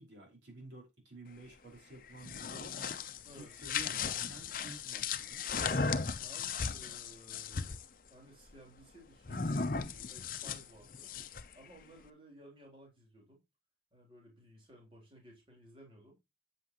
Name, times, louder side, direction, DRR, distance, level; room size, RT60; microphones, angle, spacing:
voice 1, 0.0-2.9 3.4-5.4, right 2 dB, 85° right, 5.0 m, -52 dB
sound 1, 2.1-7.8 9.3-11.5, left 5 dB, 50° left, 0.7 m, -36 dB
voice 2, 6.2-7.8 8.1-11.1 11.5-13.4 13.9-16.2, equal, 30° right, 3.6 m, -57 dB
8.5 x 8.0 x 3.1 m
head